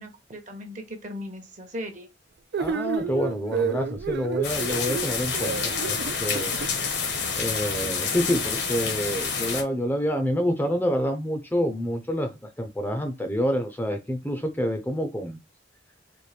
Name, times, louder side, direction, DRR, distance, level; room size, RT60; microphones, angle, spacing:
voice 1, 0.0-2.1, equal, 45° right, 0.9 m, -38 dB
sound 1, 2.5-6.7, right 5 dB, 60° right, 0.3 m, -30 dB
voice 2, 2.6-6.5 7.4-12.3 12.6-15.4, equal, 10° left, 0.5 m, -27 dB
sound 2, 4.4-9.6, left 5 dB, 70° left, 0.9 m, -28 dB
4.3 x 2.1 x 3.3 m
head